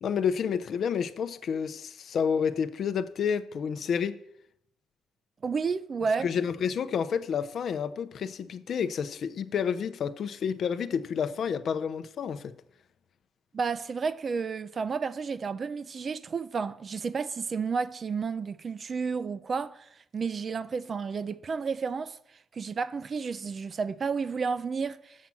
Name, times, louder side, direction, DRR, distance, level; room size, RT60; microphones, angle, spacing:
voice 1, 0.0-4.2 6.2-12.5, left 7 dB, 60° left, 0.6 m, -29 dB
voice 2, 5.4-6.3 13.5-22.2 22.5-25.3, right 5 dB, 40° right, 0.5 m, -31 dB
7.3 x 5.7 x 7.5 m
cardioid pair, 90°, 0 cm